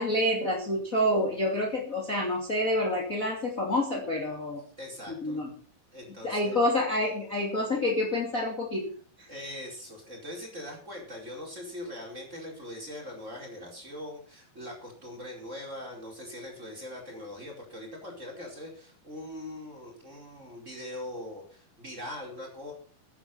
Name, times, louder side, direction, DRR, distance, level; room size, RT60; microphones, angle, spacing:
voice 1, 0.0-4.6 5.2-5.5 6.2-8.9, left 1 dB, 25° left, -1 dB, 2.8 m, -28 dB
voice 2, 4.8-5.4 5.9-6.6 9.3-22.7, left 1 dB, 20° right, 0 dB, 5.0 m, -41 dB
15.0 x 10.0 x 5.9 m, 0.42 s
omnidirectional pair, 4.2 m